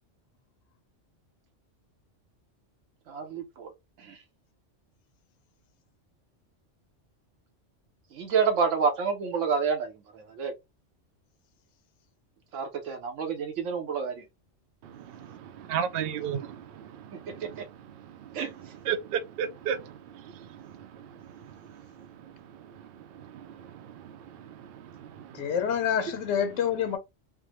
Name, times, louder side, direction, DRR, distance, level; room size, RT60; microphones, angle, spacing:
voice 1, 3.1-3.7 8.1-10.5 12.5-14.1 18.3-18.5, right 6 dB, 85° right, 1.0 m, -28 dB
voice 2, 14.8-25.6, right 8 dB, 65° right, 0.7 m, -37 dB
voice 3, 25.3-27.0, left 8 dB, 85° left, 1.0 m, -27 dB
3.4 x 2.0 x 2.9 m
omnidirectional pair, 1.3 m